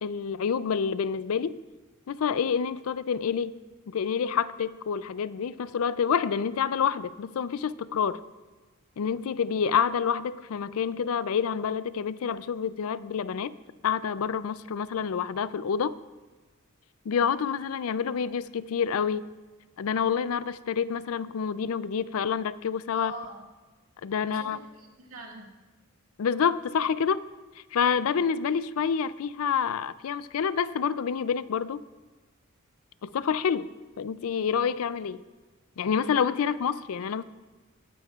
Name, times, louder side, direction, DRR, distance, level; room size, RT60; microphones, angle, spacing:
voice 1, 0.0-1.6 2.1-3.5 3.9-8.2 9.0-13.5 13.8-16.0 17.1-19.2 19.8-23.1 24.0-24.6 26.2-27.2 27.7-31.9 33.0-33.7 34.0-35.2 35.8-37.2, left 7 dB, 75° left, 16 dB, 0.4 m, -28 dB
voice 2, 22.9-23.4 24.2-25.5 37.0-37.1, right 2 dB, 75° right, 0 dB, 2.0 m, -43 dB
18.5 x 9.3 x 2.4 m, 1.3 s
head